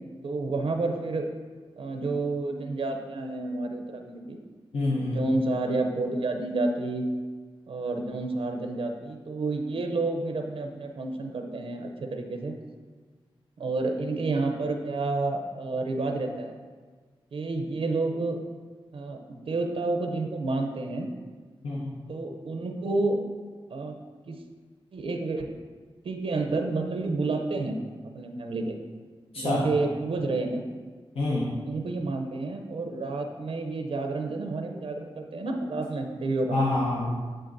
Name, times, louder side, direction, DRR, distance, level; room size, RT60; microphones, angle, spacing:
voice 1, 0.2-1.3 1.8-4.4 5.0-7.0 7.7-12.6 13.6-16.5 17.3-18.4 18.9-21.1 22.1-23.2 23.7-24.0 24.3-24.4 24.9-25.5 26.0-27.8 28.1-28.8 29.4-30.6 31.3-36.5, right 3 dB, 75° right, 4 dB, 0.6 m, -30 dB
voice 2, 4.7-5.3 21.6-21.9 29.3-29.7 31.1-31.5 36.5-37.1, left 2 dB, 85° left, -5 dB, 0.8 m, -27 dB
10.0 x 3.8 x 2.6 m, 1.5 s
cardioid pair, 65°, 10 cm